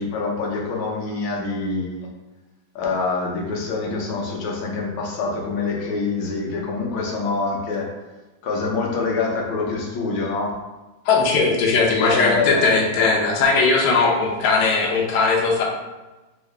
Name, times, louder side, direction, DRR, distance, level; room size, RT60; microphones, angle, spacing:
voice 1, 0.0-2.1 2.7-7.9 8.4-10.6 12.0-13.0, left 3 dB, 90° left, -1 dB, 1.6 m, -25 dB
voice 2, 11.1-15.6, left 4 dB, 70° left, -1 dB, 1.2 m, -19 dB
3.7 x 2.7 x 3.2 m, 1.1 s
omnidirectional pair, 2.1 m